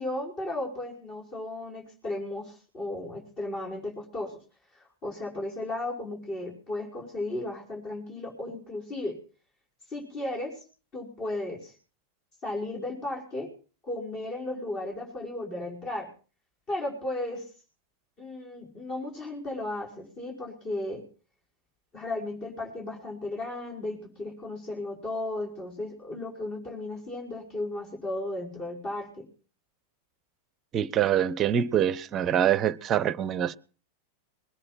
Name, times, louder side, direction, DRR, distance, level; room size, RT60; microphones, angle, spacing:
voice 1, 0.0-4.4 4.7-9.2 9.9-10.6 10.9-11.7 12.4-13.5 13.8-16.1 16.7-17.5 18.2-21.0 21.9-29.3, left 2 dB, 35° left, 5.6 m, -35 dB
voice 2, 30.7-33.6, right 10 dB, 30° right, 0.7 m, -25 dB
21.0 x 9.9 x 6.0 m
figure-of-eight pair, 90°, 0 cm